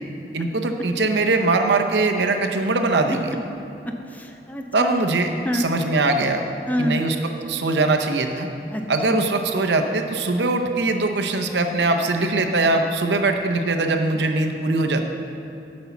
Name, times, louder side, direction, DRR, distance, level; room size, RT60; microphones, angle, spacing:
voice 1, 0.3-3.3 4.7-6.4 6.8-7.2 7.5-8.5 8.9-15.1, right 2 dB, 80° right, 4 dB, 0.8 m, -21 dB
voice 2, 4.1-4.9 5.4-5.7 6.7-7.0 8.7-8.8 9.1-9.2, left 1 dB, 10° left, 4 dB, 0.6 m, -26 dB
10.0 x 5.3 x 7.0 m, 2.9 s
head